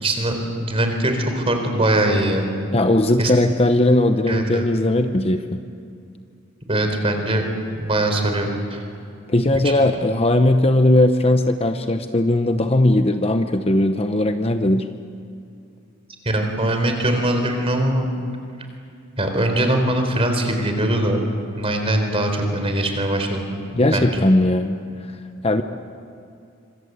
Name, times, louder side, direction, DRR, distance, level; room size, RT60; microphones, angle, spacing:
voice 1, 0.0-2.5 3.2-3.3 4.3-4.6 6.7-7.5 7.8-8.8 9.6-9.7 16.3-18.1 19.2-21.2 21.5-23.5 23.9-24.2, right 1 dB, 25° right, 5 dB, 4.0 m, -21 dB
voice 2, 2.7-5.6 9.3-14.9 23.7-24.8 25.4-25.6, left 1 dB, 30° left, 7 dB, 0.9 m, -18 dB
26.0 x 26.0 x 8.1 m, 2.5 s
head